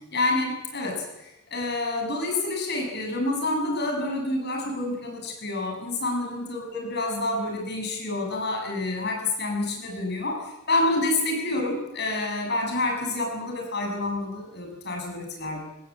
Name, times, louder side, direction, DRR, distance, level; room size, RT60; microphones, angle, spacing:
voice 1, 0.1-15.6, left 2 dB, 50° left, 1 dB, 7.5 m, -28 dB
26.5 x 19.0 x 8.9 m, 0.92 s
head